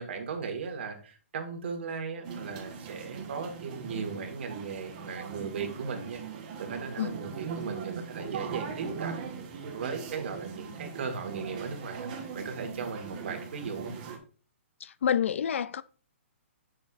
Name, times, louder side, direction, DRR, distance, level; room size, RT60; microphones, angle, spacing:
voice 1, 0.0-9.3 9.7-13.9, right 5 dB, 55° right, 1.8 m, -37 dB
sound 1, 2.2-14.2, right 6 dB, 35° right, 1.2 m, -40 dB
voice 2, 14.8-15.8, left 8 dB, 65° left, 0.4 m, -28 dB
7.9 x 6.5 x 2.5 m
hypercardioid pair, 165°, 7 cm